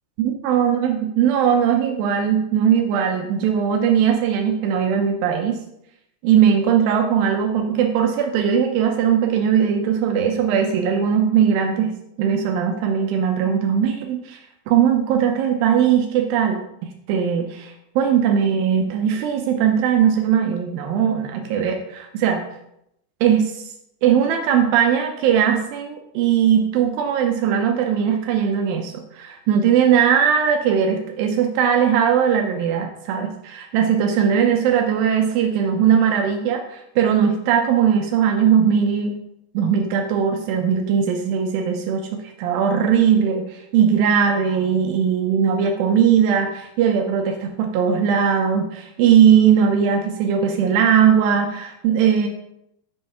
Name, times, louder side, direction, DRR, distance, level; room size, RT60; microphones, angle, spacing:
voice 1, 0.2-5.6 6.2-11.9 12.2-14.4 14.7-16.6 17.1-22.4 23.2-23.7 24.0-39.2 39.5-52.3, right 8 dB, 85° right, 3 dB, 2.0 m, -19 dB
7.2 x 3.2 x 5.5 m, 0.80 s
omnidirectional pair, 4.8 m